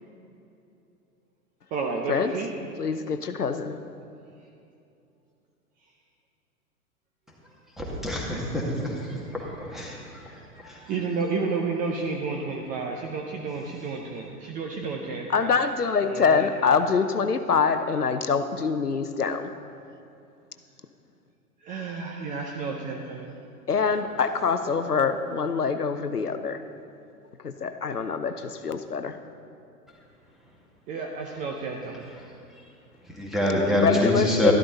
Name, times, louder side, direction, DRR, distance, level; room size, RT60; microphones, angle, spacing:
voice 1, 1.7-2.5 10.9-15.5 16.1-16.5 21.7-23.3 30.9-32.0, right 4 dB, 20° right, 1 dB, 0.6 m, -31 dB
voice 2, 2.8-3.8 15.3-19.5 23.7-26.6 27.4-29.2 33.7-34.5, left 5 dB, 85° left, 9 dB, 0.7 m, -25 dB
voice 3, 7.8-8.9 9.3-10.0 10.6-10.8 33.1-34.5, left 1 dB, ahead, -4 dB, 2.0 m, -25 dB
12.5 x 12.0 x 4.0 m, 2.6 s
figure-of-eight pair, 100°, 45 cm